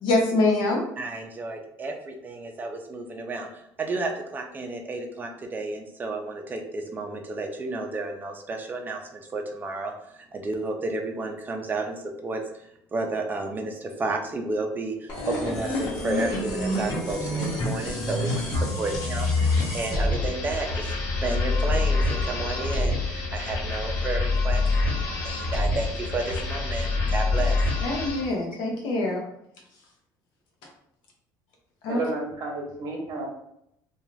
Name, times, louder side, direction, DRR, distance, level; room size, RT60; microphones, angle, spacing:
voice 1, 0.0-0.8 27.8-29.2 31.8-32.0, left 2 dB, 80° left, 0 dB, 0.7 m, -24 dB
voice 2, 1.0-3.5 3.8-20.9 21.2-27.9, right 3 dB, 25° right, 3 dB, 0.4 m, -32 dB
sound 1, 15.1-28.3, left 2 dB, 55° left, 1.0 m, -26 dB
voice 3, 31.9-33.3, right 3 dB, 60° right, -1 dB, 0.7 m, -31 dB
2.4 x 2.3 x 3.1 m, 0.76 s
cardioid pair, 120°, 8 cm